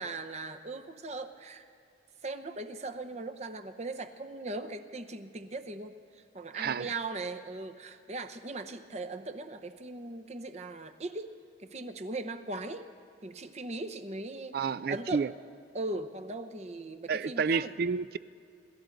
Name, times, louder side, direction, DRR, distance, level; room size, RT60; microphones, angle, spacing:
voice 1, 0.0-1.6 2.2-12.9 13.2-15.3 15.7-17.7, right 2 dB, 35° right, 8 dB, 0.8 m, -39 dB
voice 2, 6.5-6.9 14.5-15.3 17.1-18.2, right 5 dB, 55° right, 17 dB, 0.3 m, -30 dB
27.0 x 13.0 x 3.9 m, 2.5 s
head